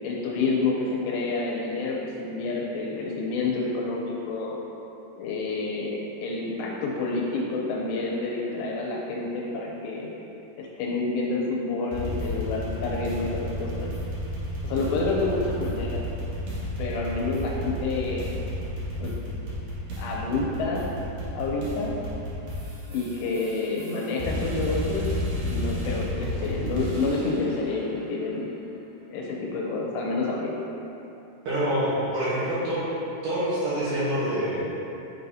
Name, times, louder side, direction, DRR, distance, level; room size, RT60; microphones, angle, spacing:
voice 1, 0.0-4.6 5.2-10.1 10.6-13.9 14.6-16.1 16.8-18.3 19.0-19.2 20.0-20.9 21.3-21.9 22.9-25.1 25.4-28.5 29.1-30.5, left 3 dB, 90° left, -3 dB, 3.1 m, -28 dB
sound 1, 11.9-27.5, left 1 dB, 90° right, 1.4 m, -32 dB
voice 2, 31.5-32.8 33.2-34.6, right 1 dB, 65° right, -12 dB, 2.3 m, -26 dB
6.7 x 5.3 x 2.7 m, 2.9 s
omnidirectional pair, 4.8 m